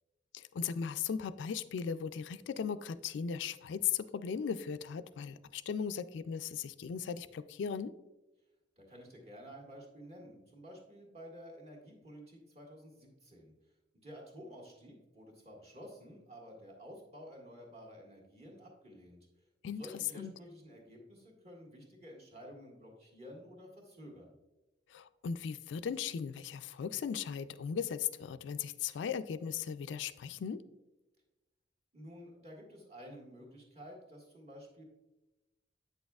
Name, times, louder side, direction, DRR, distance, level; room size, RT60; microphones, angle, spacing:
voice 1, 0.3-7.9 19.6-19.9 20.1-20.3 24.9-30.6, left 7 dB, 85° left, 12 dB, 0.3 m, -37 dB
voice 2, 8.8-13.5 14.0-19.2 19.7-24.3 31.9-34.8, equal, 35° right, -1 dB, 1.6 m, -51 dB
8.3 x 6.3 x 2.3 m, 1.0 s
head